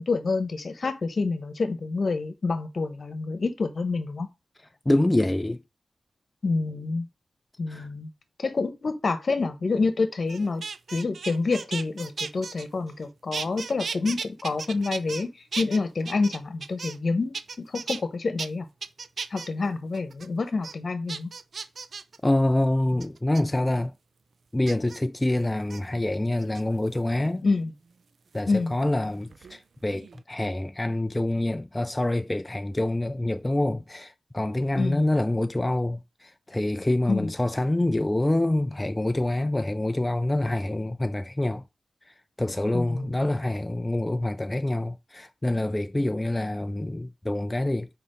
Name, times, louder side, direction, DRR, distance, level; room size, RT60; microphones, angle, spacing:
voice 1, 0.0-4.3 6.4-7.0 7.6-8.1 8.4-10.6 10.9-15.3 15.6-18.6 19.3-21.3 27.4-27.7 28.4-28.7 34.7-35.0 37.1-37.3 42.7-43.1, left 3 dB, 60° left, 1.1 m, -27 dB
voice 2, 4.9-5.6 7.7-7.9 22.2-23.9 24.5-27.5 28.3-41.6 42.4-47.9, left 1 dB, 20° left, 0.4 m, -26 dB
sound 1, 10.3-13.0 13.3-15.2 15.5-17.1 17.3-18.0 18.4-18.5 18.8-19.5 19.9-20.3 20.6-20.7 21.1-22.2 23.0-23.4 24.7-25.0 25.6-25.8 26.4-27.0 28.4-29.6 29.8-30.2, right 5 dB, 70° right, 0.5 m, -36 dB
4.7 x 4.3 x 5.1 m
cardioid pair, 65°, 0 cm